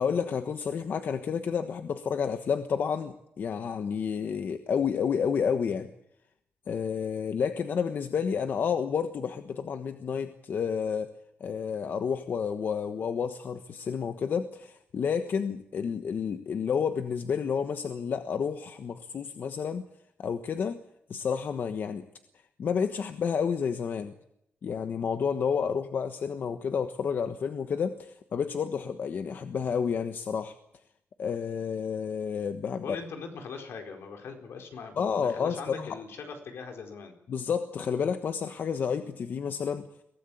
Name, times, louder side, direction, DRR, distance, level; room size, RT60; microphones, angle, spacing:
voice 1, 0.0-5.9 6.7-19.8 20.2-20.8 21.1-22.0 22.6-24.1 24.6-30.5 31.2-33.0 35.0-36.0 37.3-39.9, left 6 dB, 50° left, 8 dB, 1.3 m, -30 dB
voice 2, 32.8-37.1, left 5 dB, 75° left, 4 dB, 4.4 m, -41 dB
23.5 x 17.5 x 8.6 m, 0.77 s
wide cardioid pair, 180°, 4 cm